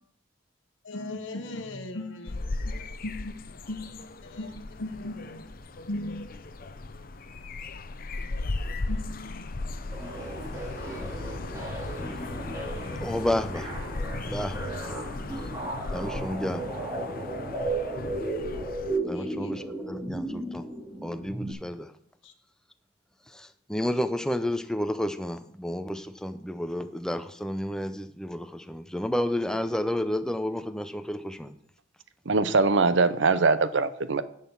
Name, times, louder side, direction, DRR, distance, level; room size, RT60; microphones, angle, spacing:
voice 1, 0.8-2.4 2.6-2.8 3.0-3.9 4.2-5.5 5.9-6.3 8.9-9.6 19.1-19.5 22.2-22.3, left 1 dB, 70° left, 1.1 m, -37 dB
sound 1, 2.3-19.0, left 2 dB, 45° left, 0.7 m, -36 dB
sound 2, 9.9-21.5, right 2 dB, 15° right, 2.6 m, -35 dB
voice 2, 13.0-13.7 14.0-14.6 15.9-16.7 19.1-20.6 21.0-21.9 23.3-31.5, left 1 dB, 5° left, 0.5 m, -31 dB
voice 3, 32.3-34.2, right 4 dB, 65° right, 0.7 m, -22 dB
10.5 x 6.5 x 5.7 m
head